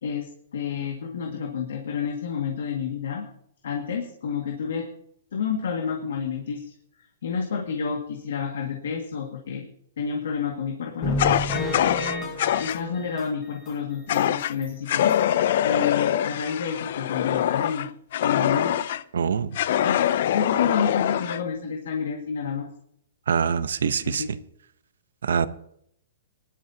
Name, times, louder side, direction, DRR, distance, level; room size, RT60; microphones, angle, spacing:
voice 1, 0.0-3.3 3.6-4.9 5.3-6.7 7.2-9.6 10.0-12.3 12.6-17.9 18.2-18.7 19.8-20.0 20.3-22.7 23.9-24.3, left 6 dB, 70° left, 2 dB, 2.1 m, -29 dB
sound 1, 11.0-13.7 14.1-14.2 14.6-14.7 15.1-15.2, left 1 dB, 15° left, 1.6 m, -31 dB
Fire, 11.2-12.8 14.1-14.5 14.9-19.0 19.5-21.4, left 11 dB, 45° left, 0.4 m, -24 dB
voice 2, 19.1-19.6 23.3-24.2 25.2-25.5, right 6 dB, 85° right, 14 dB, 0.8 m, -24 dB
19.5 x 12.0 x 2.9 m, 0.70 s
hypercardioid pair, 175°, 0 cm